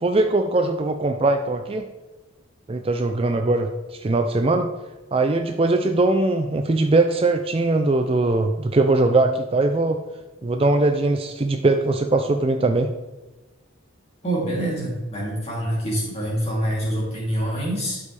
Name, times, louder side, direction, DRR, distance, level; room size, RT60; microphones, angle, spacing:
voice 1, 0.0-1.8 2.7-4.7 5.1-10.0 10.4-12.9, right 2 dB, 25° right, 5 dB, 0.4 m, -21 dB
voice 2, 14.2-18.0, right 1 dB, 30° left, -5 dB, 2.9 m, -26 dB
12.5 x 5.3 x 3.3 m, 1.1 s
head